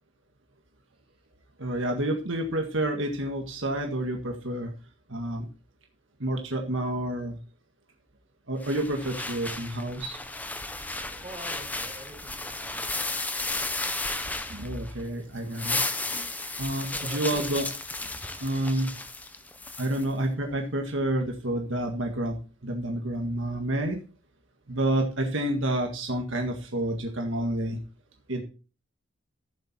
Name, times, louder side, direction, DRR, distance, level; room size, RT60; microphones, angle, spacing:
voice 1, 1.6-4.7 5.1-5.5 6.2-7.4 8.5-10.2 13.1-13.2 14.5-15.8 16.1-16.3 16.6-17.7 18.4-18.9 19.8-22.4 22.6-24.0 24.7-27.8 28.3-28.4, right 1 dB, 70° right, 2 dB, 1.7 m, -29 dB
sound 1, 8.6-15.0 15.4-20.0, left 2 dB, 10° left, 0.7 m, -34 dB
voice 2, 11.1-12.8 16.9-17.5, right 1 dB, 25° right, 1 dB, 4.1 m, -45 dB
13.5 x 7.4 x 4.3 m, 0.35 s
head